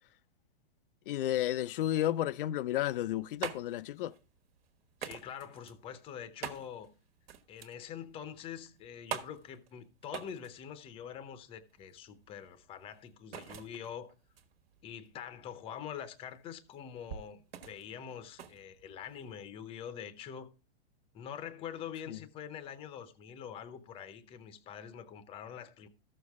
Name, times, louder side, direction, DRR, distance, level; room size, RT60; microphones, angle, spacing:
voice 1, 1.1-4.1 22.1-22.2, left 13 dB, 55° left, 0.4 m, -32 dB
sound 1, 2.9-19.5, right 9 dB, 65° right, 1.5 m, -47 dB
voice 2, 5.0-6.9 7.5-14.1 14.8-20.5 21.1-25.9, left 8 dB, 15° left, 0.7 m, -45 dB
13.5 x 6.6 x 3.5 m
hypercardioid pair, 150°, 33 cm